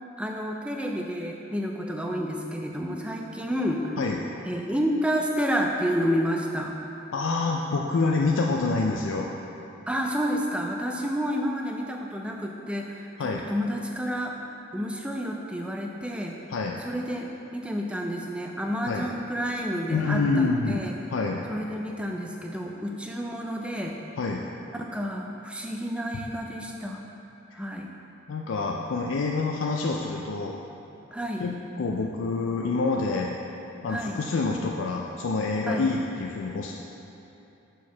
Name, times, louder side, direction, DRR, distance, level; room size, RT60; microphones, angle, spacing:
voice 1, 0.2-4.0 4.5-6.7 9.9-14.4 14.7-16.3 16.8-20.9 21.5-23.9 24.7-27.1 27.5-27.9 31.1-31.5 33.9-34.2 35.7-35.9, equal, 5° right, 1 dB, 0.4 m, -30 dB
voice 2, 7.1-9.3 13.2-13.4 16.5-16.8 18.9-19.0 19.9-20.9 21.1-21.4 24.2-24.4 28.3-30.6 31.4-33.3 33.8-36.7, left 3 dB, 75° left, 0 dB, 0.4 m, -27 dB
6.4 x 4.6 x 5.7 m, 2.9 s
head